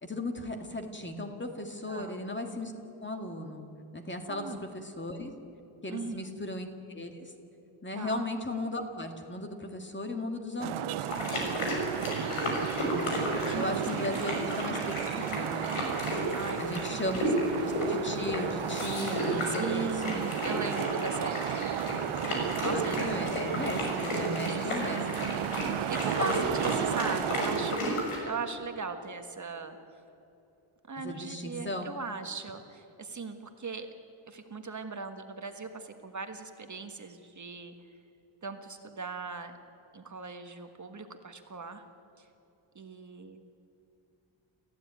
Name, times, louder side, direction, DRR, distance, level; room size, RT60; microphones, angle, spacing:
voice 1, 0.0-2.7 3.0-3.6 3.9-4.5 4.7-5.3 5.8-6.7 6.9-7.3 7.8-11.1 12.8-13.2 13.5-15.8 16.6-17.2 17.6-20.2 22.7-25.3 31.0-31.9, left 1 dB, 20° left, 5 dB, 2.1 m, -36 dB
voice 2, 1.9-2.2 4.3-4.7 5.9-6.2 7.9-8.2 11.1-11.7 13.4-13.6 16.3-16.6 16.9-17.0 17.4-17.5 19.5-21.9 22.6-23.0 24.5-25.4 25.9-29.8 30.9-33.9 34.3-37.7 38.4-39.5 39.9-41.8 42.2-42.3 42.7-43.4, right 4 dB, 35° right, 6 dB, 1.5 m, -39 dB
Traffic noise roadway noise, 10.6-27.8, right 12 dB, 75° right, 0.7 m, -34 dB
sound 1, 11.1-28.2, equal, 80° left, 6.4 m, -33 dB
29.0 x 15.0 x 9.2 m, 2.9 s
wide cardioid pair, 150°, 49 cm